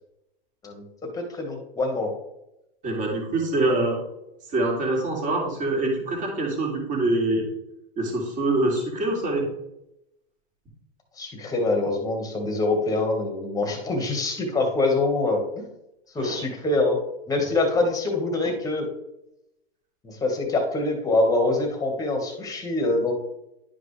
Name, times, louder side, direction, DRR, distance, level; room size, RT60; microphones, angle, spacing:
voice 1, 1.1-2.1 11.2-15.6 16.1-17.0 17.3-18.9 20.0-23.1, left 2 dB, 10° left, 3 dB, 1.6 m, -24 dB
voice 2, 2.8-4.0 4.5-7.4 8.0-9.4 16.2-16.4, right 2 dB, 25° right, -1 dB, 2.5 m, -24 dB
11.0 x 5.1 x 3.3 m, 0.87 s
hypercardioid pair, 140°, 31 cm